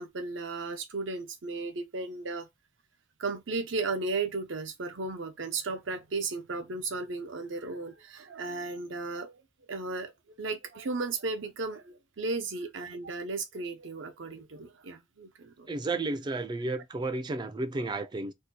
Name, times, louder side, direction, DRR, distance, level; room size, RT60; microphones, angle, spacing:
voice 1, 0.0-2.5 3.2-9.4 9.7-10.1 10.4-15.7, right 3 dB, 70° right, 0.7 m, -35 dB
voice 2, 15.7-18.3, right 2 dB, 25° right, 0.3 m, -32 dB
2.7 x 2.2 x 4.1 m
head